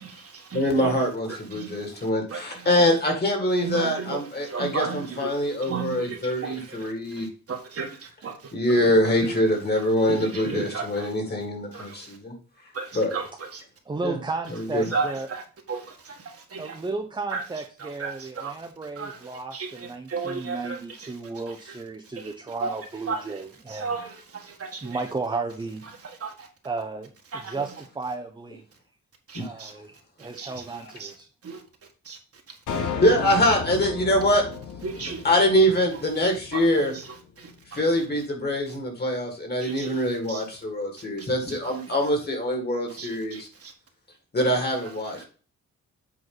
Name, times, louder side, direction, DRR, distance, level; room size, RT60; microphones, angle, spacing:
voice 1, 0.0-0.9 1.5-1.8 2.3-2.9 3.6-4.2 4.4-5.3 5.6-6.9 7.2-7.9 8.2-8.3 10.0-11.1 11.7-12.0 12.7-13.3 13.5-13.6 14.9-15.4 15.7-15.8 16.5-16.7 17.3-17.4 18.0-18.5 19.0-19.2 19.5-20.8 22.6-22.8 23.1-23.2 23.7-25.0 26.2-26.5 27.3-27.5 29.3-29.7 30.4-30.5 31.0-31.1 31.4-31.6 32.0-32.2 34.8-35.2 36.5-36.8 37.4-37.5 39.6-39.9 40.3-40.4 41.6-41.8 43.0-43.7, right 5 dB, 55° right, 2 dB, 1.6 m, -33 dB
voice 2, 0.5-7.3 8.5-12.3 12.9-13.2 14.0-14.2 14.6-14.9 29.3-29.5 33.0-34.4 35.0-36.9 37.7-43.5 44.3-45.2, equal, 35° left, 3 dB, 2.2 m, -24 dB
voice 3, 13.9-15.3 16.6-24.0 24.8-25.8 26.6-28.7 29.4-29.9 30.2-31.3, right 3 dB, 15° right, 4 dB, 0.7 m, -34 dB
sound 1, 32.7-37.1, left 6 dB, 85° left, 1.0 m, -34 dB
7.9 x 4.5 x 3.9 m, 0.38 s
wide cardioid pair, 140°, 29 cm